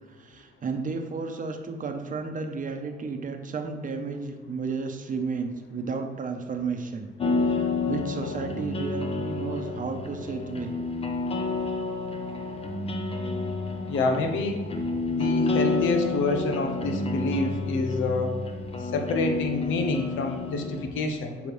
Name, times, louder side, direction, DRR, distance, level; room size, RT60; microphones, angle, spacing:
voice 1, 0.2-7.1 7.4-10.7, right 4 dB, 40° right, 5 dB, 0.8 m, -33 dB
sound 1, 7.2-20.9, left 3 dB, 30° left, 0.7 m, -29 dB
voice 2, 13.9-14.7 15.1-18.4 18.9-21.5, left 2 dB, 80° left, 5 dB, 0.9 m, -27 dB
7.0 x 4.8 x 3.2 m, 1.4 s
cardioid pair, 90°, 20 cm